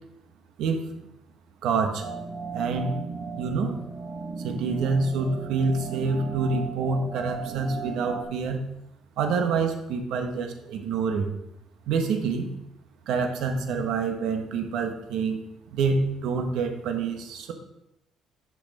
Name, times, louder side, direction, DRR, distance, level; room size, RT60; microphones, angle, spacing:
voice 1, 1.6-2.1 2.5-3.0 3.4-3.8 4.4-8.6 9.2-11.3 11.9-12.5 13.1-15.4 15.7-17.5, right 4 dB, 70° right, 5 dB, 1.3 m, -27 dB
sound 1, 2.0-8.2, right 4 dB, 35° right, 1.3 m, -36 dB
10.5 x 6.1 x 4.2 m, 0.84 s
cardioid pair, 170°, 0 cm